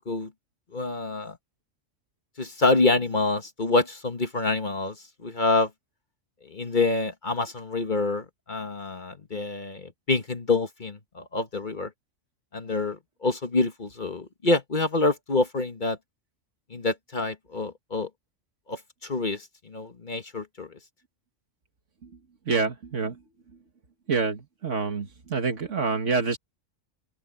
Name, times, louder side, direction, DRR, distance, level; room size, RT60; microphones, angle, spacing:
voice 1, 0.7-1.4 2.4-5.0 5.2-5.7 6.5-11.9 12.5-16.0 16.7-18.1 18.7-20.7, left 3 dB, 40° left, 1.6 m, -27 dB
voice 2, 22.5-23.2 24.1-26.4, right 4 dB, 70° right, 2.1 m, -27 dB
open air
omnidirectional pair, 1.3 m